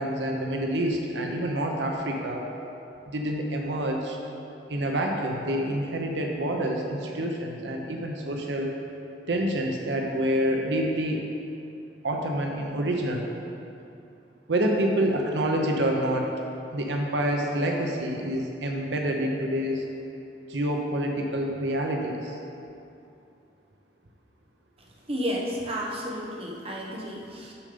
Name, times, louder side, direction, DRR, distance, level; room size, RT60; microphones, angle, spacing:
voice 1, 0.0-2.4 3.1-4.2 4.7-8.8 9.3-11.3 12.0-13.3 14.5-16.3 16.7-19.8 20.5-22.4, right 1 dB, 85° right, 1 dB, 0.8 m, -27 dB
voice 2, 25.1-27.5, equal, 35° right, -3 dB, 1.1 m, -32 dB
7.1 x 6.6 x 5.1 m, 2.7 s
head